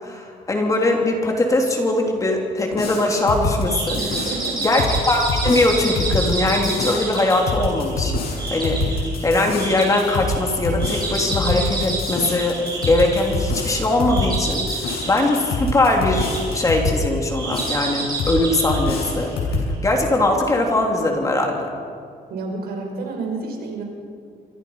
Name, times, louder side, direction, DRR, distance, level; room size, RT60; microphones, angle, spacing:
voice 1, 0.0-4.0 4.6-8.1 8.5-8.8 9.2-21.7, left 2 dB, 20° left, 1 dB, 3.1 m, -21 dB
sound 1, 2.7-17.0 17.5-18.4 18.7-19.7, left 3 dB, 70° left, 7.4 m, -26 dB
sound 2, 3.7-19.8, right 3 dB, 25° right, 8.0 m, -29 dB
voice 2, 3.9-4.6 22.3-23.8, right 3 dB, 70° right, 2 dB, 5.5 m, -30 dB
28.0 x 24.0 x 5.6 m, 2.2 s
cardioid pair, 175°, 16 cm